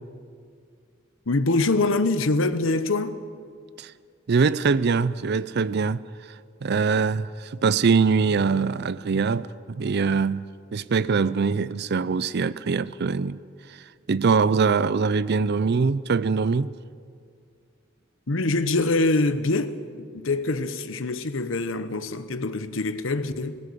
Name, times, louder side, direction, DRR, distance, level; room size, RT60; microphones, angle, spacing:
voice 1, 1.3-3.2 18.3-23.6, left 2 dB, 70° left, 1.0 m, -24 dB
voice 2, 4.3-6.0 6.6-10.4 10.7-13.4 14.1-16.7, right 5 dB, 55° right, 0.5 m, -23 dB
19.0 x 16.0 x 8.4 m
head